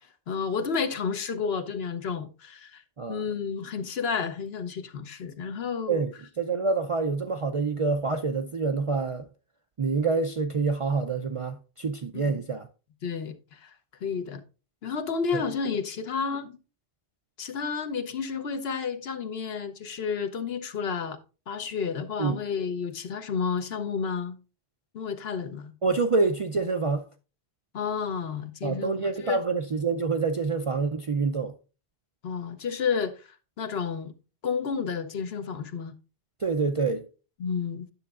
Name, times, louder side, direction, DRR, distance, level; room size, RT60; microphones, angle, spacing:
voice 1, 0.3-2.8 3.1-6.0 12.1-12.4 13.0-13.7 14.0-14.4 14.8-16.6 17.4-21.2 21.5-24.4 24.9-25.7 27.7-29.4 32.2-34.1 34.4-35.9 37.4-37.9, left 6 dB, 70° left, 1.0 m, -31 dB
voice 2, 5.9-9.3 9.8-12.7 15.3-15.4 22.2-22.4 25.8-27.0 28.6-31.5 36.4-37.1, right 4 dB, 45° right, 0.4 m, -27 dB
9.7 x 6.9 x 2.4 m
omnidirectional pair, 1.1 m